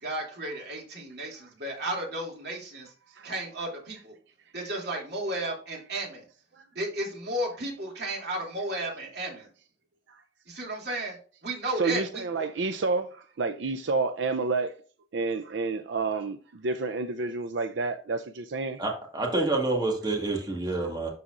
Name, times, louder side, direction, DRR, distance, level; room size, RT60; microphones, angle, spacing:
voice 1, 0.0-2.9 3.2-4.1 4.5-6.2 6.7-9.5 10.5-11.2 11.4-12.5, right 1 dB, 65° right, 2.8 m, -33 dB
voice 2, 11.8-14.7 15.1-18.8, right 3 dB, 85° right, 0.5 m, -29 dB
voice 3, 18.8-21.1, right 2 dB, 25° right, 1.7 m, -28 dB
12.0 x 4.1 x 2.5 m
head